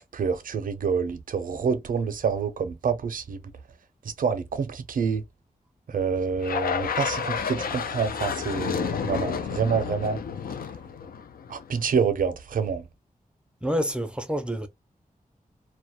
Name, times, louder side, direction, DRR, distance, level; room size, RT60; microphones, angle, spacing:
voice 1, 0.1-3.4 4.2-5.2 5.9-10.2 11.5-12.8, right 6 dB, 70° right, 0.4 m, -27 dB
sound 1, 6.4-11.8, left 7 dB, 90° left, 0.4 m, -30 dB
voice 2, 13.6-14.7, equal, 5° right, 0.4 m, -27 dB
2.2 x 2.0 x 2.7 m
wide cardioid pair, 110°, 15 cm